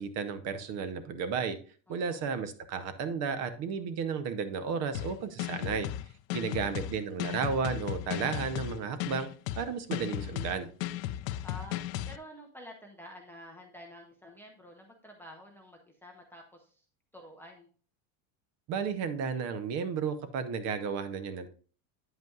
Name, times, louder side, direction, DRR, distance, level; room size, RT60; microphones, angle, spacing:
voice 1, 0.0-1.6 1.9-5.9 6.3-9.3 9.6-10.7 18.7-21.5, right 6 dB, 40° right, 11 dB, 0.7 m, -33 dB
voice 2, 1.9-2.2 6.4-6.9 7.2-7.4 11.4-16.8 17.1-17.7, left 1 dB, 5° left, 0 dB, 0.5 m, -50 dB
sound 1, 4.9-12.2, left 13 dB, 65° left, 0.5 m, -35 dB
9.2 x 8.0 x 2.4 m, 0.40 s
cardioid pair, 170°, 44 cm